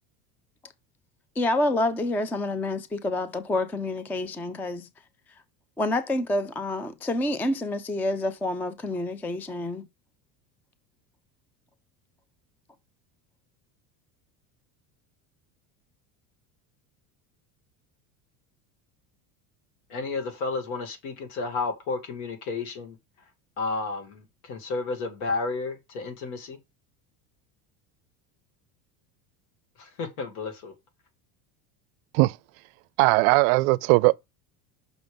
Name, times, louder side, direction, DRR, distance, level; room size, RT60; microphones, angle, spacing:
voice 1, 1.4-4.9 5.8-9.8, left 2 dB, 5° left, 0.3 m, -28 dB
voice 2, 19.9-23.0 23.6-26.6 29.8-30.7, left 3 dB, 75° left, 2.8 m, -32 dB
voice 3, 33.0-34.1, right 23 dB, 70° right, 0.6 m, -19 dB
6.1 x 5.4 x 5.2 m
cardioid pair, 145°, 43 cm